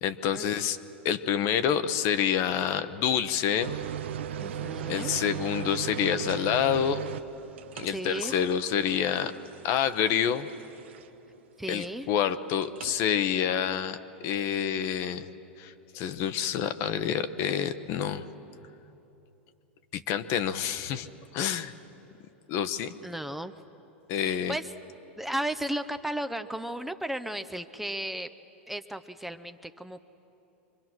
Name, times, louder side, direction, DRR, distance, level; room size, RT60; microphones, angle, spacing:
voice 1, 0.0-0.8 1.0-3.7 4.9-7.0 7.7-9.3 9.6-10.5 11.7-14.0 14.2-15.3 15.6-18.3 19.9-21.1 21.3-21.7 22.5-22.9 24.1-24.6, left 9 dB, 50° left, 11 dB, 1.0 m, -27 dB
sound 1, 3.6-11.3 12.6-13.0, right 9 dB, 75° right, 0.7 m, -38 dB
voice 2, 4.4-5.1 7.9-8.3 11.6-12.1 23.0-23.5 24.2-24.7 25.2-28.3 28.7-30.0, right 1 dB, 5° right, 9 dB, 0.7 m, -34 dB
25.5 x 22.5 x 6.2 m, 3.0 s
hypercardioid pair, 95°, 6 cm